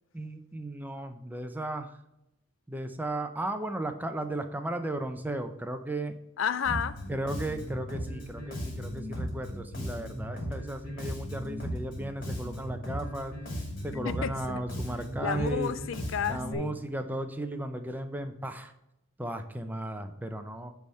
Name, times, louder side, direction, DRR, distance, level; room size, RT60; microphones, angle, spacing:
voice 1, 0.1-2.0 2.7-6.1 7.1-13.3 13.8-15.7 16.3-18.7 19.2-20.7, right 1 dB, 10° right, 0.5 m, -35 dB
voice 2, 6.4-7.0 14.0-14.6 15.2-16.8, left 7 dB, 60° left, 0.4 m, -31 dB
Bass guitar, 6.6-16.5, equal, 40° left, 2.7 m, -37 dB
9.7 x 3.5 x 6.3 m
head